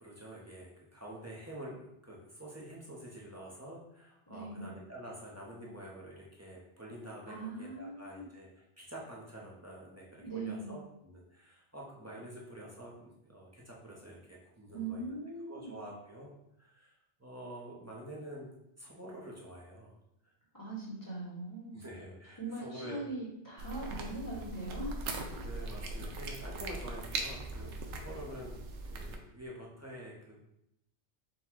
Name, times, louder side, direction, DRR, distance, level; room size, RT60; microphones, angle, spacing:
voice 1, 0.0-16.3 16.6-16.9 17.2-18.5 18.8-19.9 21.7-23.0 25.4-28.6 28.9-30.4, right 1 dB, 15° right, -5 dB, 0.7 m, -47 dB
voice 2, 4.3-4.7 7.3-8.2 10.2-10.8 14.7-15.8 20.5-21.8 22.4-25.5, right 2 dB, 20° left, -7 dB, 1.2 m, -41 dB
sound 1, 23.6-29.2, right 2 dB, 85° right, 0.9 m, -40 dB
4.0 x 2.3 x 4.4 m, 0.79 s
omnidirectional pair, 1.2 m